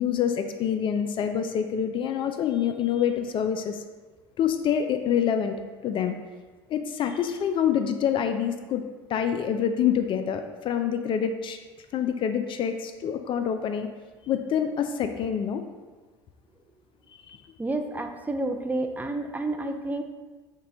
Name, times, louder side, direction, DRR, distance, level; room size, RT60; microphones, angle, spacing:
voice 1, 0.0-3.8 4.4-5.6 5.8-6.2 6.7-8.8 9.1-11.6 11.9-13.9 14.3-15.6 17.3-17.4, left 8 dB, 45° left, 7 dB, 0.4 m, -26 dB
voice 2, 17.6-20.0, right 2 dB, 15° right, 5 dB, 0.4 m, -30 dB
5.4 x 2.2 x 3.8 m, 1.3 s
hypercardioid pair, 75°, 12 cm